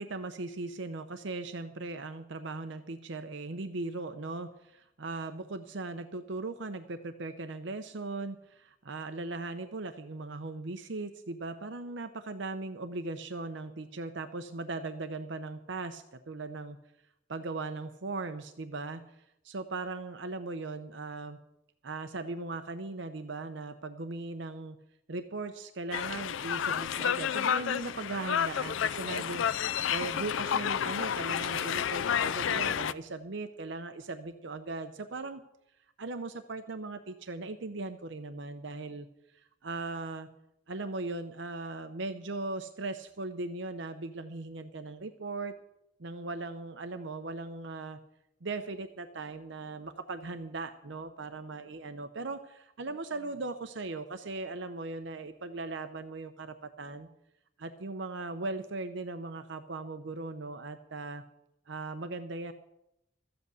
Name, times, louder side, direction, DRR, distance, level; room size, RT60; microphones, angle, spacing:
voice 1, 0.0-16.8 17.3-19.0 19.4-21.4 21.8-24.8 25.1-35.4 36.0-39.1 39.3-40.3 40.7-45.5 46.0-48.0 48.4-57.1 57.6-61.2 61.7-62.5, right 3 dB, 60° right, 8 dB, 0.7 m, -38 dB
sound 1, 25.9-32.9, left 8 dB, 70° left, 0.4 m, -30 dB
13.5 x 7.9 x 8.1 m, 0.85 s
head